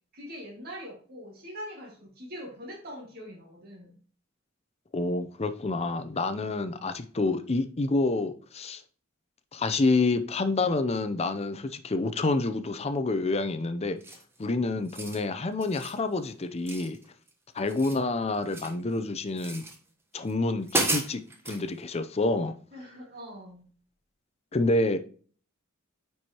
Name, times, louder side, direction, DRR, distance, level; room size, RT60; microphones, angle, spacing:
voice 1, 0.1-4.0 22.7-23.7, equal, 50° right, 1.8 m, -43 dB
voice 2, 4.9-8.8 9.5-14.0 14.4-17.0 17.5-19.6 20.1-22.5 24.5-25.0, left 2 dB, 30° left, 0.5 m, -28 dB
sound 1, 14.0-14.4 14.8-15.2 15.6-16.0 16.7-17.3 17.6-18.8 19.4-19.8 20.3-20.4 20.7-21.6, right 2 dB, 10° right, 1.0 m, -33 dB
9.6 x 4.6 x 2.9 m
head